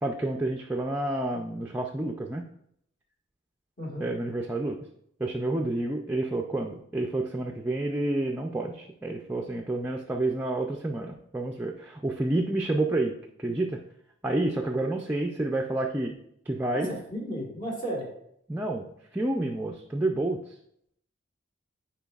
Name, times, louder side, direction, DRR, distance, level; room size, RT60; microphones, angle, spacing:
voice 1, 0.0-2.4 4.0-4.8 5.2-13.8 14.2-16.2 16.5-16.9 18.5-20.4, right 2 dB, 10° right, 1 dB, 0.3 m, -29 dB
voice 2, 16.7-18.1, equal, 40° left, -2 dB, 1.5 m, -33 dB
9.1 x 4.5 x 2.4 m, 0.72 s
head